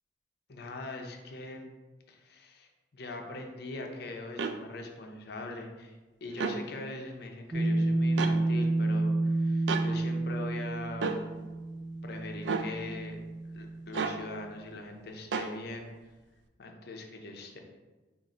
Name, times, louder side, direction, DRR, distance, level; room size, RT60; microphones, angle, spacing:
voice 1, 0.5-1.7 2.1-11.1 12.0-13.2 13.4-15.9 16.6-17.6, left 2 dB, 65° left, 3 dB, 0.6 m, -42 dB
sound 1, 4.4-4.6 6.3-6.6 8.2-8.4 9.7-9.9 11.0-11.2 12.4-12.7 13.9-14.2 15.3-15.5, right 4 dB, 85° right, 0.4 m, -31 dB
sound 2, 7.5-14.2, right 2 dB, 15° right, 0.5 m, -30 dB
5.3 x 2.5 x 3.7 m, 1.2 s
head